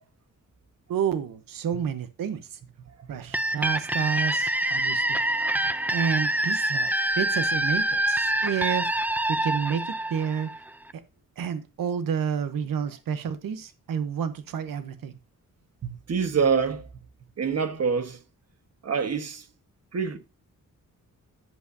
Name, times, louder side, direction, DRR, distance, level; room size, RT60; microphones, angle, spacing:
voice 1, 0.9-2.6 3.1-5.2 5.9-8.9 9.3-10.5 11.4-15.1, right 7 dB, 90° right, 0.9 m, -30 dB
sound 1, 3.3-10.9, right 1 dB, 5° right, 0.4 m, -26 dB
voice 2, 15.8-16.9 17.4-18.2 18.8-19.4 19.9-20.2, right 6 dB, 50° right, 1.3 m, -26 dB
11.0 x 7.3 x 2.7 m
wide cardioid pair, 160°, 33 cm